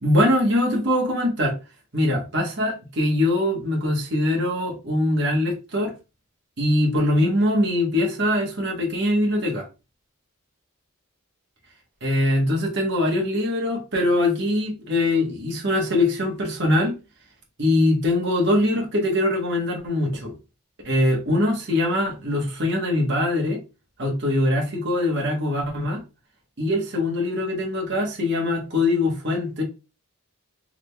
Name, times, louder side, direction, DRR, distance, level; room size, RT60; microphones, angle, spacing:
voice 1, 0.0-1.6 1.9-5.9 6.6-9.7 12.0-16.9 17.6-20.3 20.8-23.6 24.0-26.0 26.6-29.6, left 1 dB, 50° right, 1.1 m, -22 dB
3.7 x 3.2 x 2.3 m
head